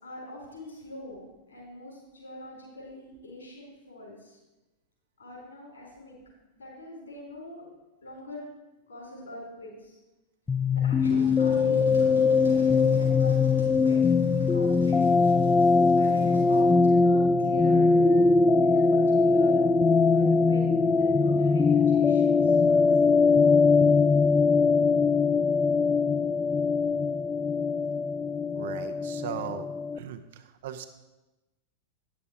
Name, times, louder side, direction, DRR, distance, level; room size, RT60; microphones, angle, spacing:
voice 1, 0.0-1.2 1.5-4.4 5.2-6.2 6.5-7.7 8.0-8.5 8.9-9.9 10.7-13.4 13.8-15.0 16.0-18.3 18.6-19.6 20.1-20.7 20.9-24.1, left 2 dB, 70° left, -2 dB, 3.9 m, -43 dB
sound 1, 10.5-30.0, left 4 dB, 15° left, 0.3 m, -22 dB
sound 2, 11.0-16.6, equal, 90° left, 3.7 m, -44 dB
voice 2, 28.5-29.7 29.9-30.9, right 10 dB, 55° right, 7 dB, 0.7 m, -38 dB
9.4 x 6.9 x 5.0 m, 1.1 s
figure-of-eight pair, 90°, 0 cm